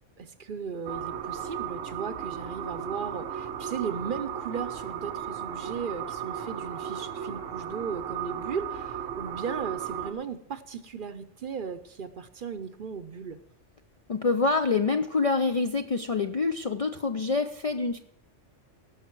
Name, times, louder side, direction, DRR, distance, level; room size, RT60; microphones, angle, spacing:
voice 1, 0.2-13.4, right 6 dB, 50° right, 10 dB, 0.7 m, -36 dB
sound 1, 0.8-10.1, right 8 dB, 90° right, 1.3 m, -35 dB
voice 2, 14.1-18.0, left 4 dB, 45° left, 6 dB, 0.4 m, -26 dB
18.0 x 6.6 x 4.5 m, 0.75 s
omnidirectional pair, 1.2 m